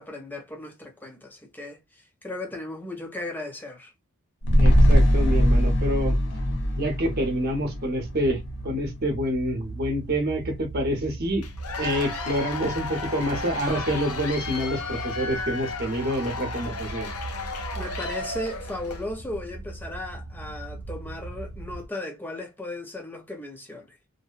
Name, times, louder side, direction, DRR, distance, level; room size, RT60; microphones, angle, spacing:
voice 1, 0.0-3.9 17.8-24.0, left 1 dB, 10° left, 0.5 m, -36 dB
sound 1, 4.4-8.9 9.3-9.4, equal, 55° left, 0.6 m, -21 dB
voice 2, 4.6-6.1 6.8-11.4 11.8-17.1, equal, 45° right, 0.8 m, -27 dB
sound 2, 8.0-21.9, right 3 dB, 80° right, 0.5 m, -39 dB
Cheering / Applause / Crowd, 11.4-19.1, left 4 dB, 90° left, 0.7 m, -34 dB
2.6 x 2.1 x 2.3 m
head